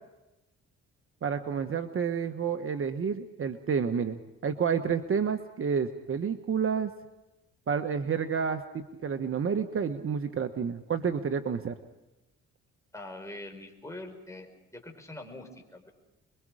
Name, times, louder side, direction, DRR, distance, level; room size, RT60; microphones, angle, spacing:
voice 1, 1.2-6.9 7.7-11.7, right 6 dB, 45° right, 8 dB, 1.4 m, -30 dB
voice 2, 12.9-15.9, left 1 dB, 10° left, 3 dB, 5.4 m, -44 dB
28.0 x 23.0 x 5.0 m, 1.0 s
cardioid pair, 90°, 30 cm